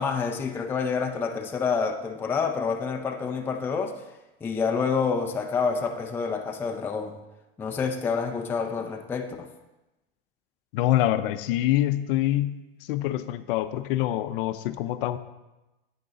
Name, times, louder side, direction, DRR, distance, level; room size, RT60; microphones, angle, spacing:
voice 1, 0.0-4.0 4.4-7.2 7.6-9.5, left 5 dB, 5° left, 3 dB, 0.4 m, -28 dB
voice 2, 10.7-12.6 12.9-15.2, left 14 dB, 60° left, 12 dB, 0.6 m, -25 dB
8.6 x 6.5 x 3.9 m, 1.0 s
supercardioid pair, 140°, 31 cm